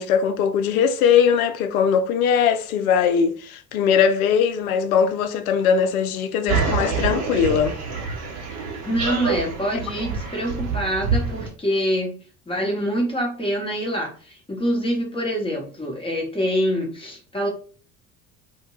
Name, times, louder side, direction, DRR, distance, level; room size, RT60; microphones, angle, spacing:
voice 1, 0.0-7.8, left 7 dB, 75° left, 0.5 m, -20 dB
sound 1, 6.5-11.5, right 5 dB, 35° right, 0.8 m, -26 dB
voice 2, 8.8-12.2 12.5-17.5, equal, 10° left, 1.0 m, -25 dB
2.2 x 2.2 x 3.0 m
figure-of-eight pair, 65°, 43 cm